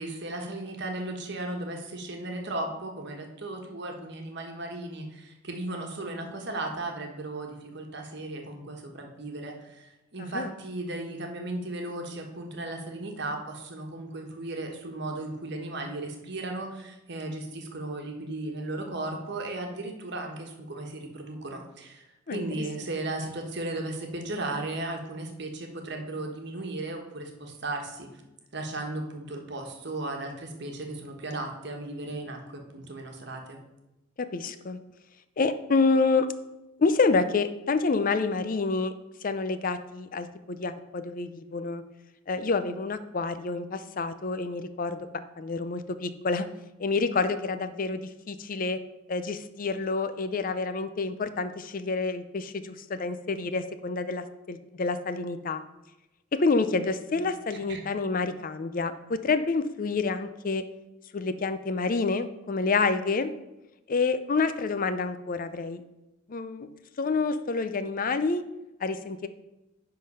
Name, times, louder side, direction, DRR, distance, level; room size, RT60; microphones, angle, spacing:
voice 1, 0.0-28.2 28.5-33.6 57.5-57.8, right 2 dB, 60° right, 2 dB, 1.3 m, -36 dB
voice 2, 10.2-10.5 22.3-22.4 34.2-34.8 35.4-36.3 36.8-38.9 39.2-41.8 42.3-46.5 46.8-48.8 49.1-55.6 56.3-60.6 61.1-63.3 63.9-65.8 66.3-66.7 67.0-68.4 68.8-69.3, left 4 dB, 45° left, 12 dB, 0.5 m, -28 dB
9.9 x 3.9 x 5.5 m, 0.96 s
head